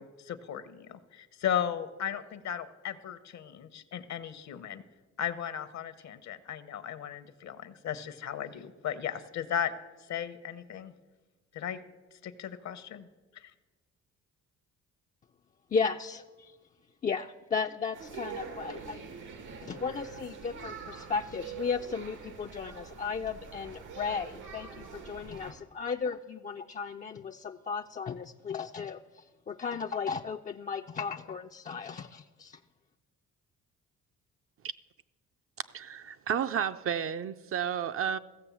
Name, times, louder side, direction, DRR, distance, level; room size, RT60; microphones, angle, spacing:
voice 1, 0.0-4.8 5.2-9.7 10.1-10.9 11.5-11.8 12.2-13.1 13.3-13.5, left 9 dB, 65° left, 0.9 m, -36 dB
voice 2, 15.7-16.6 17.0-19.0 19.6-32.6, left 5 dB, 25° left, 0.4 m, -35 dB
sound 1, 17.9-25.5, right 5 dB, 90° right, 1.7 m, -44 dB
voice 3, 35.7-38.2, right 8 dB, 45° right, 0.5 m, -32 dB
15.0 x 6.8 x 7.0 m
cardioid pair, 90°, 30 cm